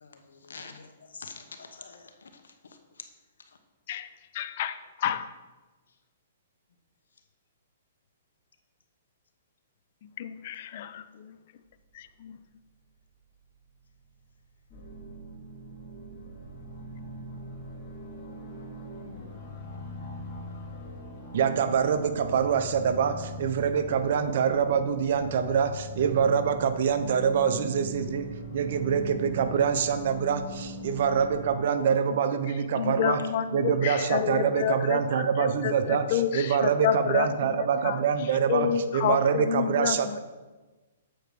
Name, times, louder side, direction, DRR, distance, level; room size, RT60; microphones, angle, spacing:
voice 1, 0.0-2.5 3.0-3.1, left 5 dB, 85° left, 6 dB, 1.1 m, -46 dB
voice 2, 4.4-4.7 5.0-5.2 10.2-11.0 32.8-33.7 34.1-35.0 35.6-36.3 36.8-37.3 37.8-37.9 38.5-39.9, left 10 dB, 50° left, 11 dB, 0.6 m, -28 dB
sound 1, 14.7-31.6, left 1 dB, 25° left, 3.1 m, -41 dB
voice 3, 21.3-40.2, right 7 dB, 60° right, 9 dB, 0.8 m, -25 dB
7.7 x 4.8 x 6.7 m, 1.2 s
hypercardioid pair, 140°, 0 cm